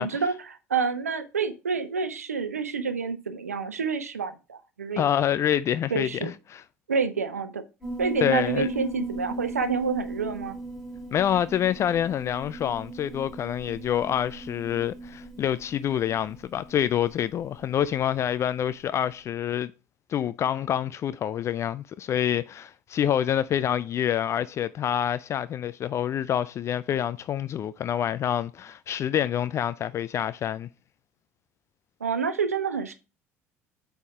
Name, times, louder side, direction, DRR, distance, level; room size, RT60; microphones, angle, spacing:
voice 1, 0.0-5.0 5.9-6.3 6.9-7.6 8.0-10.6 32.0-32.9, right 5 dB, 80° right, 0.8 m, -28 dB
voice 2, 5.0-6.6 8.2-8.7 11.1-19.7 20.1-30.7, left 10 dB, 35° left, 0.3 m, -27 dB
Piano, 7.8-18.5, right 2 dB, 5° left, 3.3 m, -38 dB
8.3 x 3.5 x 4.8 m
figure-of-eight pair, 65°, 8 cm